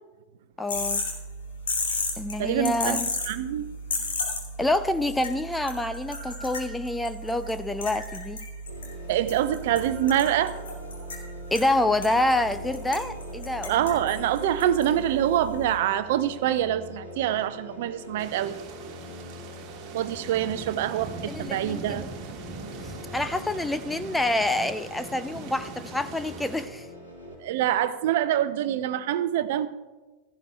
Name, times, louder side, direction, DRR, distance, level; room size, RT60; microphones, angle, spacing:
voice 1, 0.6-1.0 2.2-3.1 4.6-8.4 11.5-13.8 21.3-22.1 23.1-26.9, left 1 dB, 5° left, 10 dB, 0.5 m, -27 dB
sound 1, 0.7-15.8, left 2 dB, 65° left, 2.8 m, -34 dB
voice 2, 2.4-3.0 3.3-3.7 9.1-10.5 13.7-18.5 19.9-22.0 27.4-29.7, right 11 dB, 55° right, 13 dB, 0.6 m, -25 dB
sound 2, 8.7-27.3, left 1 dB, 85° left, 4.5 m, -44 dB
sound 3, 18.2-26.7, right 4 dB, 35° right, 1.5 m, -41 dB
16.5 x 14.5 x 2.3 m, 1.3 s
figure-of-eight pair, 90°, 0 cm